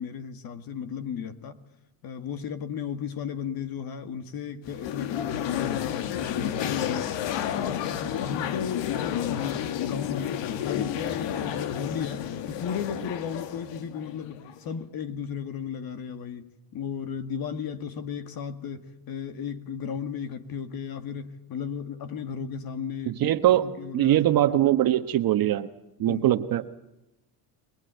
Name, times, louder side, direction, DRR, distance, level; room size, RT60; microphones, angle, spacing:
voice 1, 0.0-1.6 2.0-5.9 6.2-7.1 7.6-24.2 26.1-26.3, left 7 dB, 45° left, 2.0 m, -35 dB
sound 1, 4.6-14.7, left 10 dB, 65° left, 1.8 m, -31 dB
voice 2, 23.1-23.7 23.9-25.7 26.0-26.6, right 13 dB, 45° right, 1.3 m, -22 dB
28.0 x 21.0 x 9.1 m
supercardioid pair, 110°, 48 cm